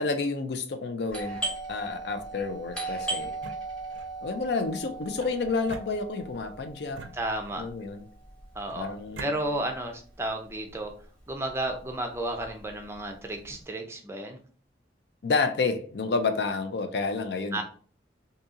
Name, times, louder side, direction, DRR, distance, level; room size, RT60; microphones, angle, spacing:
voice 1, 0.0-1.4 1.7-3.4 4.2-7.0 7.6-8.0 8.7-9.6 15.2-17.6, left 4 dB, 65° left, 0.4 m, -30 dB
Doorbell, 1.1-10.5 10.7-10.8 11.5-11.8 12.1-13.5, right 2 dB, 5° left, 1.0 m, -38 dB
sound 1, 3.2-4.2 5.2-6.4 6.9-7.8 8.6-9.3, right 3 dB, 90° right, 0.5 m, -45 dB
voice 2, 7.1-7.7 8.6-10.9 11.3-14.4 17.5-17.6, right 1 dB, 15° right, 0.4 m, -32 dB
2.7 x 2.7 x 3.5 m
head